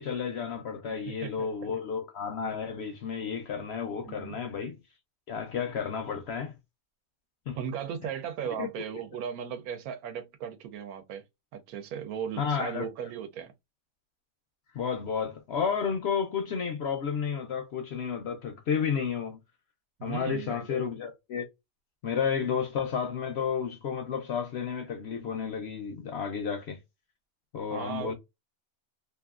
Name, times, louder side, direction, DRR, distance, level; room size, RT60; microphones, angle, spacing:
voice 1, 0.0-4.8 5.3-6.5 7.5-7.6 8.6-8.7 12.4-12.9 14.7-19.4 20.0-21.4 22.0-26.8 27.5-28.1, left 6 dB, 65° left, 0.7 m, -31 dB
voice 2, 0.8-1.5 4.0-4.4 7.5-11.2 11.5-13.5 20.0-20.9 27.7-28.1, right 8 dB, 80° right, 1.1 m, -37 dB
2.9 x 2.4 x 2.4 m
omnidirectional pair, 1.5 m